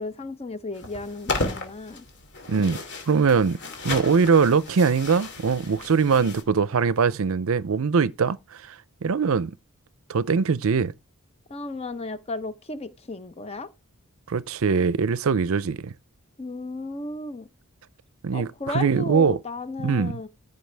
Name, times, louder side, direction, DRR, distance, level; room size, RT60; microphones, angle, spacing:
voice 1, 0.0-2.0 11.5-13.7 16.4-17.5 18.3-20.3, left 2 dB, 25° left, 0.8 m, -34 dB
sound 1, 0.7-6.4, left 2 dB, 50° left, 2.5 m, -34 dB
voice 2, 3.1-3.6 3.8-8.7 9.0-9.5 10.1-10.9 14.3-15.9 18.2-19.4 19.8-20.2, right 5 dB, 65° right, 0.5 m, -22 dB
15.0 x 5.4 x 3.4 m
head